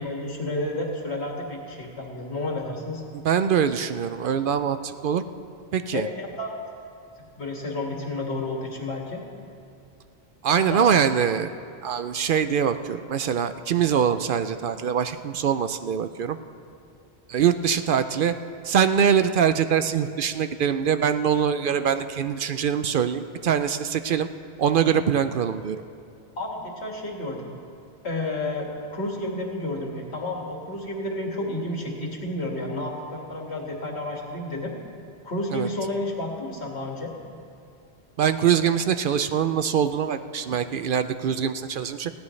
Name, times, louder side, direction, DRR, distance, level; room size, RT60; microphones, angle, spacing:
voice 1, 0.0-3.0 5.9-6.5 7.4-9.2 10.7-11.1 26.4-27.5 28.0-34.7 35.2-37.1, left 2 dB, 85° left, -1 dB, 2.3 m, -31 dB
voice 2, 3.2-5.2 5.7-6.1 10.4-11.5 11.8-16.4 17.3-18.3 18.6-24.3 24.6-25.8 35.5-35.7 38.2-42.1, right 8 dB, 60° right, 10 dB, 0.6 m, -23 dB
19.5 x 16.0 x 3.2 m, 2.6 s
omnidirectional pair, 1.1 m